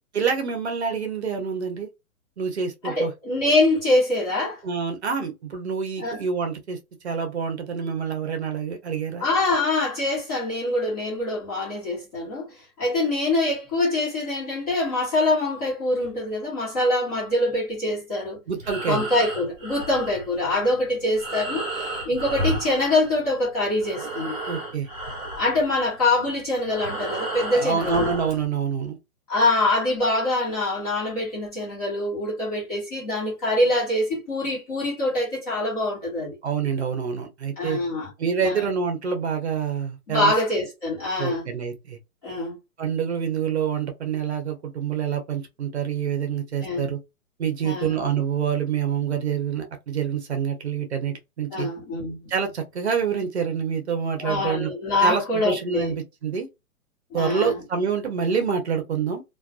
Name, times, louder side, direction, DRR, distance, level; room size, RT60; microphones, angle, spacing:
voice 1, 0.1-1.9 2.4-3.1 4.6-6.8 7.0-9.3 18.5-19.1 24.5-24.9 27.5-29.0 36.4-37.8 38.2-40.3 41.2-42.0 42.8-47.0 47.4-51.7 52.3-54.7 55.0-56.5 57.1-59.2, right 6 dB, 50° right, 0.7 m, -27 dB
voice 2, 2.8-4.6 6.0-6.2 9.2-18.4 18.8-24.4 25.4-28.1 29.3-36.4 37.6-38.1 38.4-38.6 40.1-41.4 42.2-42.6 46.6-46.9 47.6-47.9 51.5-52.3 54.2-55.9 57.1-57.6, left 2 dB, 25° left, 1.1 m, -24 dB
Breathing, 18.5-23.5 23.7-28.4, right 1 dB, 30° right, 1.3 m, -33 dB
2.3 x 2.3 x 2.3 m
hypercardioid pair, 175°, 43 cm